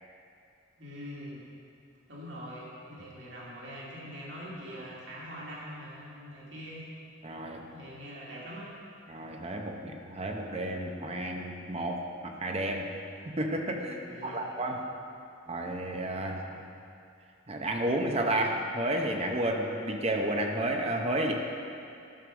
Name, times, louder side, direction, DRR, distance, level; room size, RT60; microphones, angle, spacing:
voice 1, 0.8-1.4 2.1-6.8 7.7-8.7 14.0-14.5 16.2-16.4, equal, 60° right, -5 dB, 2.4 m, -43 dB
voice 2, 7.2-7.6 9.1-12.9 13.3-14.8 15.5-16.4 17.5-21.3, right 1 dB, 30° right, 2 dB, 0.8 m, -31 dB
11.5 x 6.4 x 6.2 m, 2.5 s
head